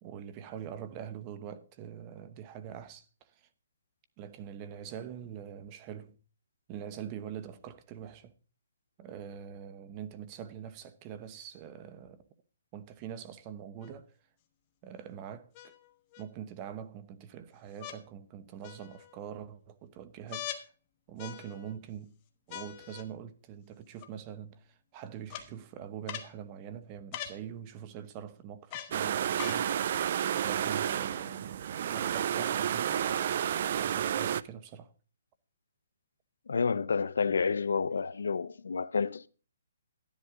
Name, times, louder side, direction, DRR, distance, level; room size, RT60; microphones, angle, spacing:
voice 1, 0.0-3.5 4.2-6.2 6.7-8.3 9.0-12.2 12.7-14.1 14.8-15.7 16.2-20.7 21.1-22.2 22.5-30.1 30.4-34.9, right 9 dB, 25° right, 0.9 m, -44 dB
sound 1, 13.8-13.9 15.6-16.3 17.8-18.0 18.6-19.2 20.3-20.7 21.2-21.7 22.5-23.1 24.0-24.1 25.3-25.5 26.1-26.3 27.1-27.4 28.7-29.0 29.4-29.6 30.5-30.6, left 11 dB, 25° left, 1.2 m, -42 dB
sound 2, 28.9-34.4, right 9 dB, 45° right, 0.4 m, -31 dB
voice 2, 36.5-39.3, left 5 dB, 85° left, 0.7 m, -29 dB
12.5 x 10.5 x 3.7 m
hypercardioid pair, 165°, 0 cm